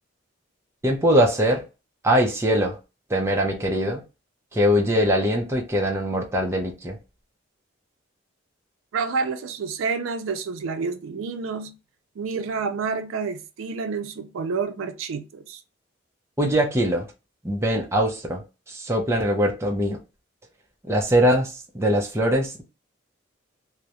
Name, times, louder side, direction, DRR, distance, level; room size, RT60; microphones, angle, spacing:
voice 1, 0.8-1.6 2.0-2.8 3.1-4.0 4.5-7.0 16.4-17.1 17.4-20.0 20.9-22.6, equal, 15° right, 0.4 m, -22 dB
voice 2, 8.9-11.7 12.2-15.6, right 5 dB, 85° right, 0.4 m, -29 dB
2.3 x 2.0 x 2.7 m
head